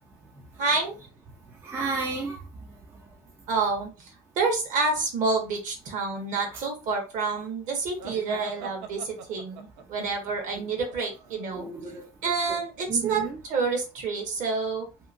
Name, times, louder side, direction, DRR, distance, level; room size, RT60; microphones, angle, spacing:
voice 1, 0.6-1.0 3.5-11.7 12.2-14.9, right 4 dB, 45° right, 2 dB, 1.0 m, -28 dB
voice 2, 1.6-2.7 6.5-6.6 8.1-8.7 10.5-10.6 11.5-12.6 12.9-13.4, right 4 dB, 15° right, 0 dB, 0.4 m, -34 dB
sound 1, 8.0-11.7, right 7 dB, 75° right, 0.5 m, -44 dB
2.8 x 2.2 x 2.5 m, 0.30 s
cardioid pair, 145°, 17 cm